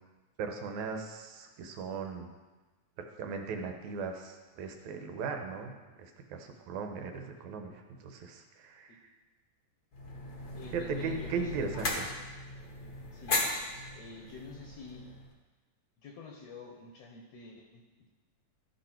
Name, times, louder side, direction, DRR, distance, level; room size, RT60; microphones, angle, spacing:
voice 1, 0.4-2.3 3.2-5.7 6.0-9.0 10.7-12.1, right 5 dB, 75° right, 4 dB, 2.2 m, -38 dB
sound 1, 9.9-15.3, left 2 dB, 50° left, 1.1 m, -37 dB
voice 2, 10.5-11.7 13.1-13.4 14.0-15.1 16.0-17.8, left 4 dB, 70° left, 0 dB, 1.9 m, -48 dB
13.5 x 5.4 x 4.4 m, 1.3 s
omnidirectional pair, 3.5 m